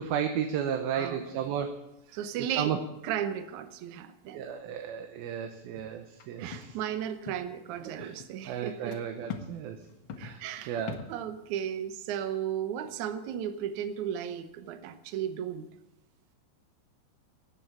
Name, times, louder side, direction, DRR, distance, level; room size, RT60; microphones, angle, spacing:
voice 1, 0.0-1.8 2.5-2.8 4.3-6.8 8.0-8.1 8.5-9.8 10.2-10.4 10.7-11.0, right 8 dB, 90° right, 5 dB, 2.8 m, -33 dB
voice 2, 0.9-1.3 2.1-2.7 3.0-4.5 6.4-9.0 10.2-15.7, right 9 dB, 70° right, 9 dB, 2.1 m, -35 dB
sound 1, 5.8-6.2 6.5-6.8 7.0-7.5 7.8-8.3 8.9-9.0 9.3-9.5 9.8-11.2, left 6 dB, 90° left, 1.1 m, -42 dB
19.0 x 7.7 x 7.2 m, 0.90 s
omnidirectional pair, 4.2 m